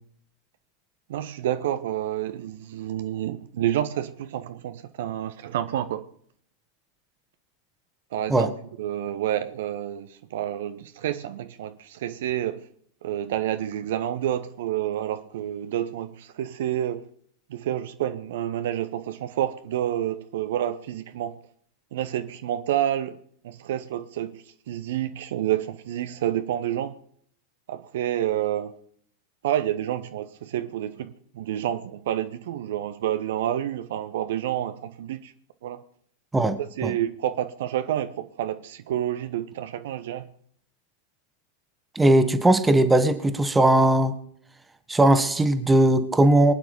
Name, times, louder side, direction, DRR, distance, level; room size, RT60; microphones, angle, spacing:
voice 1, 1.1-6.1 8.1-8.5 8.8-12.7 13.0-17.0 17.5-21.4 21.9-23.2 23.4-27.0 27.7-28.8 29.4-35.3 35.6-35.8 36.6-40.3, right 11 dB, 55° right, 0.8 m, -29 dB
voice 2, 41.9-44.1 44.9-46.5, right 1 dB, 10° right, 1.6 m, -19 dB
23.5 x 9.3 x 5.1 m
figure-of-eight pair, 90°, 0 cm